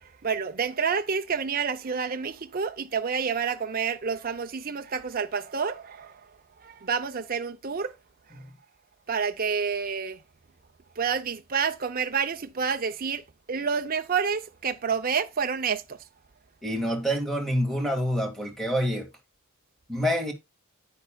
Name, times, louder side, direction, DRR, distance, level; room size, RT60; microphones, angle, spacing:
voice 1, 0.0-6.3 6.6-7.9 8.3-8.4 9.1-10.2 11.0-16.0, right 6 dB, 40° right, 0.7 m, -29 dB
voice 2, 16.6-19.1 19.9-20.3, equal, ahead, 2.0 m, -27 dB
10.0 x 8.9 x 2.3 m
head